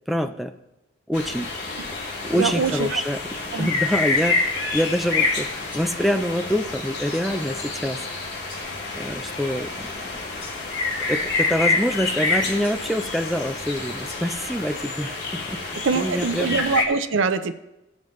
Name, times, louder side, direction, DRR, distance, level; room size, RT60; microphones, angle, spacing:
voice 1, 0.1-0.5 1.1-1.5 1.8-2.0 2.2-3.2 3.6-8.1 8.9-9.9 11.1-15.6 16.0-16.6, equal, ahead, 6 dB, 0.3 m, -26 dB
sound 1, 1.1-16.8, left 3 dB, 65° left, 2.2 m, -28 dB
voice 2, 2.4-3.0 3.5-3.7 15.8-17.5, right 4 dB, 85° right, 12 dB, 0.6 m, -23 dB
sound 2, 2.6-2.8 4.2-4.3 5.7-5.9 7.1-7.3 8.5-8.7 10.4-10.8 12.6-12.9 14.1-14.2, left 2 dB, 25° left, 4.0 m, -43 dB
16.0 x 7.2 x 3.1 m, 0.97 s
head